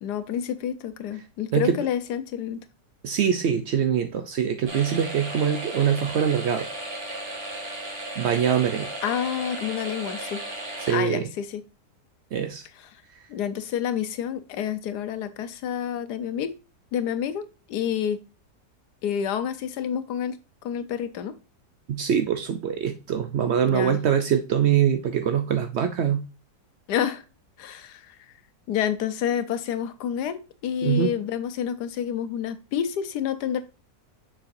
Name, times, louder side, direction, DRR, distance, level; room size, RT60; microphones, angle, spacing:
voice 1, 0.0-2.6 9.0-10.4 10.9-11.6 13.3-16.5 16.9-18.2 19.0-20.4 20.6-21.4 23.6-24.0 26.9-27.2 27.6-28.1 28.7-33.6, left 9 dB, 75° left, 11 dB, 1.3 m, -28 dB
voice 2, 3.0-6.7 8.2-8.9 10.8-11.3 12.3-12.6 21.9-26.2 30.8-31.1, right 8 dB, 80° right, 7 dB, 0.6 m, -23 dB
sound 1, 4.7-10.9, right 1 dB, 40° right, 1.6 m, -35 dB
6.9 x 5.7 x 2.6 m, 0.31 s
omnidirectional pair, 1.8 m